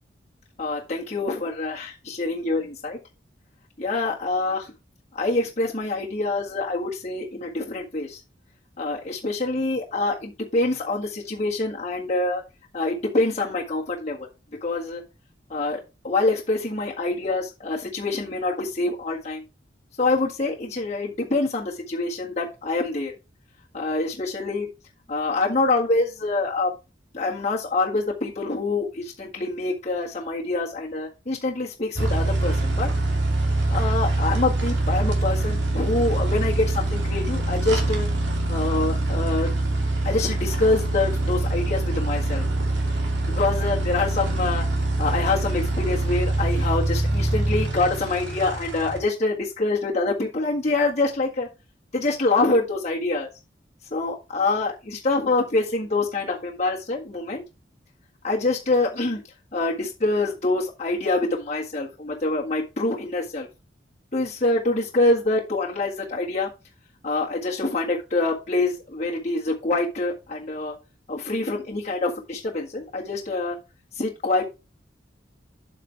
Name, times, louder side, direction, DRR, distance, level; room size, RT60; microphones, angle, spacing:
voice 1, 0.6-3.0 3.8-4.7 5.1-8.2 8.8-12.4 12.7-14.3 14.6-15.0 15.5-19.4 20.0-23.2 23.7-24.7 25.1-26.7 27.1-32.9 33.7-38.1 38.5-39.5 40.0-42.5 43.3-44.7 45.0-51.5 51.9-53.3 53.9-57.4 58.2-59.2 59.5-63.5 64.1-66.5 67.0-70.7 71.1-73.6 74.0-74.5, left 2 dB, 40° left, -3 dB, 1.7 m, -25 dB
sound 1, 32.0-49.0, right 2 dB, 80° right, 2.7 m, -24 dB
7.7 x 7.1 x 3.4 m, 0.28 s
head